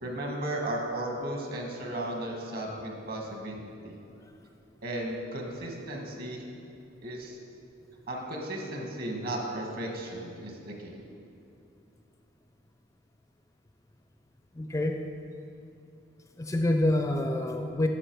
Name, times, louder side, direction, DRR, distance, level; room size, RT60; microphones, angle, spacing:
voice 1, 0.0-4.0 4.8-6.4 7.0-7.4 8.1-10.9, right 1 dB, 50° right, 1 dB, 1.4 m, -35 dB
voice 2, 14.5-15.0 16.4-17.9, left 1 dB, 15° left, 4 dB, 0.4 m, -27 dB
10.0 x 6.9 x 4.5 m, 2.7 s
head